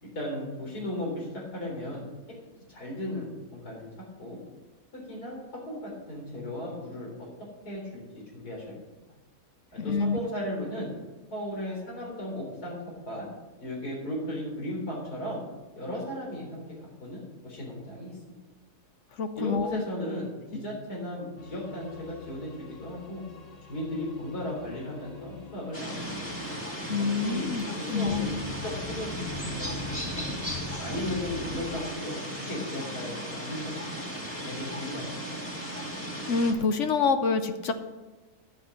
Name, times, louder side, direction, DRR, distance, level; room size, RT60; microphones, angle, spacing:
voice 1, 0.0-2.4 2.7-4.4 4.9-8.8 9.7-10.9 11.3-13.3 13.6-15.4 15.8-18.4 19.4-23.2 23.7-26.3 27.1-28.3 28.6-30.3 30.8-33.8 34.3-35.4, left 1 dB, 85° left, -3 dB, 4.4 m, -36 dB
voice 2, 9.8-10.2 19.2-19.8 26.9-27.6 27.9-28.3 36.3-37.7, left 4 dB, 60° left, 8 dB, 1.0 m, -26 dB
sound 1, 21.4-31.9, left 4 dB, 30° left, 1.0 m, -44 dB
sound 2, 25.7-36.5, equal, 10° left, 2.2 m, -36 dB
10.0 x 8.5 x 6.4 m, 1.2 s
omnidirectional pair, 1.6 m